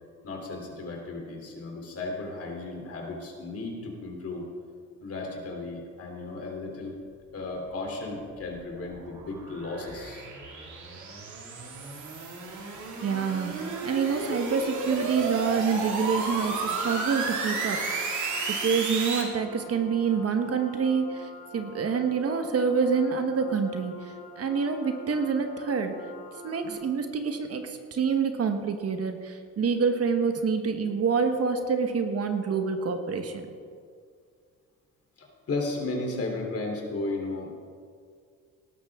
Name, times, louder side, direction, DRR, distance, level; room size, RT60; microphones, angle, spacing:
voice 1, 0.2-4.5 5.0-6.9 7.3-10.3 35.2-37.6, left 2 dB, 50° left, 0 dB, 3.4 m, -34 dB
sound 1, 7.9-19.2, right 3 dB, 75° right, 2.5 m, -33 dB
voice 2, 13.0-18.1 18.5-26.0 26.4-33.5, right 5 dB, 50° right, 6 dB, 1.3 m, -27 dB
sound 2, 13.6-26.7, right 1 dB, 20° right, 3.1 m, -46 dB
18.5 x 12.0 x 3.7 m, 2.1 s
cardioid pair, 90°, 30 cm